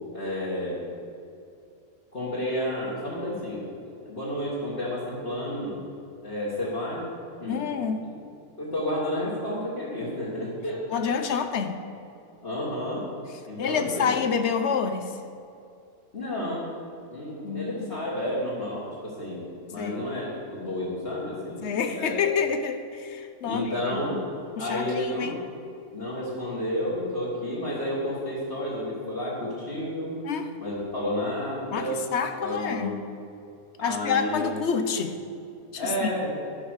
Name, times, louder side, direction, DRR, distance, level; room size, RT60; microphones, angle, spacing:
voice 1, 0.1-0.8 2.1-5.7 6.2-7.1 7.4-7.6 8.6-10.9 12.4-13.1 13.5-14.1 16.1-16.7 17.1-21.7 21.9-22.2 23.4-24.2 24.6-25.3 25.9-30.2 30.6-32.0 32.4-32.9 33.8-34.5 35.8-36.3, left 1 dB, 40° left, -9 dB, 2.0 m, -31 dB
voice 2, 7.5-8.1 10.9-11.8 13.6-15.2 17.4-18.0 19.8-20.1 21.6-24.0 24.6-25.4 30.2-30.5 31.7-33.0 33.8-35.2 35.7-36.1, left 6 dB, 60° left, 8 dB, 0.8 m, -28 dB
11.0 x 5.5 x 6.4 m, 2.5 s
omnidirectional pair, 1.5 m